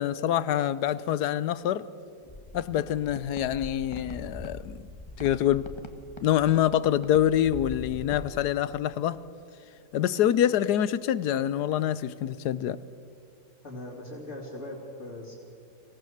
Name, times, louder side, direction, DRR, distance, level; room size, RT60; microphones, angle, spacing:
voice 1, 0.0-1.8 2.5-4.8 5.2-5.7 6.2-9.2 9.9-12.8, left 11 dB, 80° left, 1.3 m, -26 dB
sound 1, 2.2-8.3, left 2 dB, 20° left, 1.3 m, -42 dB
voice 2, 13.6-15.3, left 1 dB, 45° left, 3.5 m, -40 dB
25.5 x 17.0 x 6.6 m
omnidirectional pair, 1.8 m